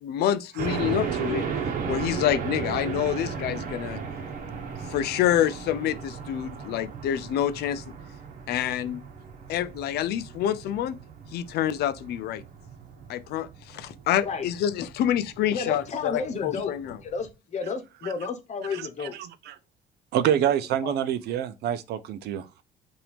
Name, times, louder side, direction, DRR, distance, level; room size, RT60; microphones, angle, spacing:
voice 1, 0.0-1.5 1.9-4.0 4.9-7.8 8.5-9.0 9.5-11.0 11.3-12.4 13.1-17.0, left 11 dB, 70° left, 0.5 m, -27 dB
sound 1, 0.6-17.3, right 6 dB, 50° right, 1.2 m, -36 dB
voice 2, 15.5-16.7 17.0-19.1 20.4-20.5 20.8-20.9, left 5 dB, 45° left, 1.0 m, -32 dB
voice 3, 18.7-19.6 20.1-22.6, right 10 dB, 75° right, 0.6 m, -27 dB
5.8 x 2.7 x 3.4 m
cardioid pair, 110°, 17 cm